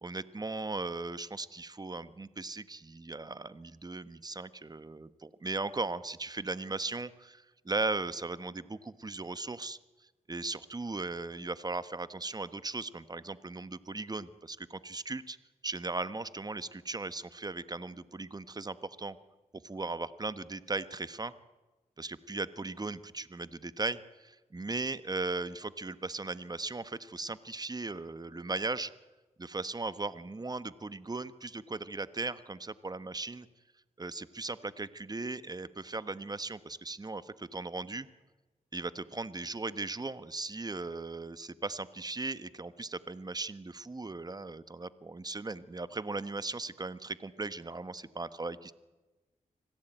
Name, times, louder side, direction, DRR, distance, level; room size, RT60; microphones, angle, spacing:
voice 1, 0.0-9.8 10.3-15.4 15.6-19.2 19.6-21.3 22.0-28.9 29.4-33.5 34.0-38.1 38.7-48.7, right 3 dB, 25° right, 14 dB, 1.2 m, -37 dB
25.5 x 17.0 x 9.1 m, 1.1 s
cardioid pair, 55°, 15 cm